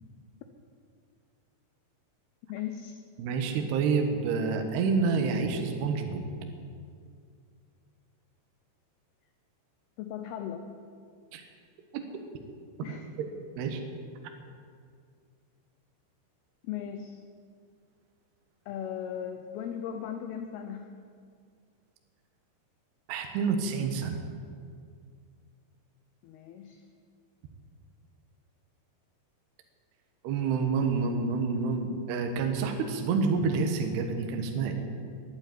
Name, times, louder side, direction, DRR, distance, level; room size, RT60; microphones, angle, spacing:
voice 1, 2.5-2.9 10.0-10.7 12.8-13.1 16.6-17.2 18.7-20.9 26.2-26.8, left 9 dB, 75° left, 6 dB, 2.5 m, -37 dB
voice 2, 3.2-6.2 11.3-11.4 11.9-12.0 13.2-13.3 13.6-13.8 23.1-24.2 30.2-34.7, right 5 dB, 75° right, 4 dB, 3.1 m, -28 dB
12.0 x 11.0 x 9.1 m, 2.2 s
omnidirectional pair, 5.0 m